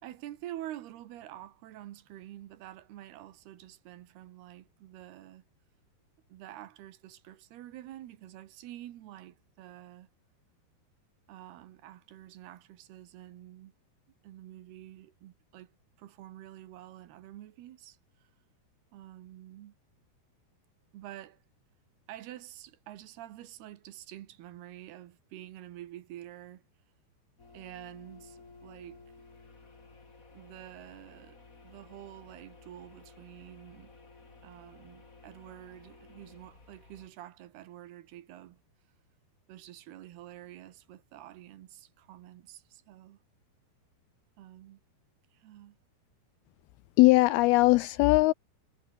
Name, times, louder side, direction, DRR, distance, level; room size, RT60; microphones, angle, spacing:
voice 1, 0.0-5.4 6.3-10.1 11.3-13.7 14.2-18.3 18.9-19.8 20.9-21.4 22.1-26.7 27.5-29.0 30.3-33.9 34.4-38.6 39.5-43.2 44.4-44.8 45.3-45.8, right 13 dB, 75° right, 3.4 m, -48 dB
sound 1, 27.4-37.1, left 3 dB, 20° left, 3.2 m, -55 dB
voice 2, 47.0-48.3, left 21 dB, 85° left, 2.4 m, -20 dB
omnidirectional pair, 4.6 m